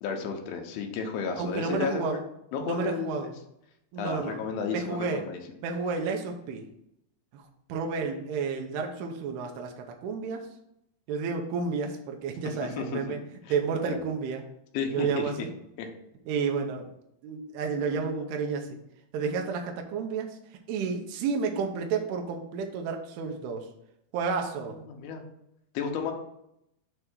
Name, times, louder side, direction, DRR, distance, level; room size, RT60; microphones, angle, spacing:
voice 1, 0.0-2.2 2.5-3.3 4.0-5.4 12.8-13.2 13.4-13.5 13.9-14.0 14.7-15.3 15.8-15.9 24.6-25.2 25.7-26.1, left 6 dB, 80° left, 3 dB, 2.8 m, -33 dB
voice 2, 1.4-2.2 2.6-3.3 3.9-4.4 4.7-5.2 5.6-6.6 7.3-7.4 7.7-10.5 11.1-13.2 13.5-14.4 14.9-15.5 16.3-16.9 17.2-18.7 19.1-20.3 20.7-23.7 24.1-24.8, right 5 dB, 80° right, 3 dB, 2.8 m, -31 dB
7.2 x 3.3 x 6.1 m, 0.79 s
omnidirectional pair, 4.6 m